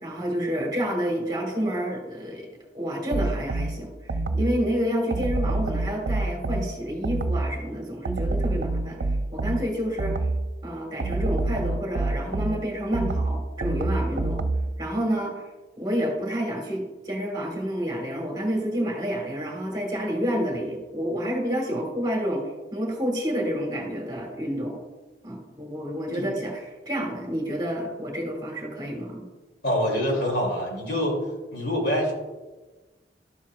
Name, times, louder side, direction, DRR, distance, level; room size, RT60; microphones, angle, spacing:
voice 1, 0.0-2.5 2.7-10.2 10.6-14.4 14.8-15.4 15.8-22.4 22.7-24.8 25.2-29.3, equal, 20° right, 0 dB, 1.5 m, -29 dB
sound 1, 3.1-4.6 5.1-7.6 8.1-10.5 11.0-14.8, right 2 dB, 90° right, 0.5 m, -27 dB
voice 2, 29.6-31.2 31.5-32.1, equal, 75° left, -1 dB, 2.7 m, -25 dB
12.5 x 7.3 x 2.4 m, 1.2 s
head